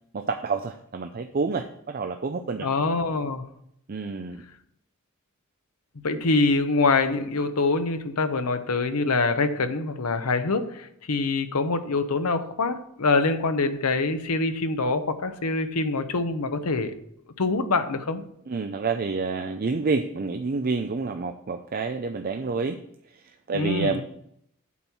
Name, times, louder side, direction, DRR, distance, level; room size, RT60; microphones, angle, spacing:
voice 1, 0.1-2.7 3.9-4.4 18.5-22.8 23.1-24.0, right 4 dB, 40° right, 0.4 m, -28 dB
voice 2, 2.6-3.5 6.0-16.9 17.4-18.2 23.5-24.0, left 3 dB, 90° left, 0.9 m, -25 dB
8.4 x 4.5 x 7.1 m
head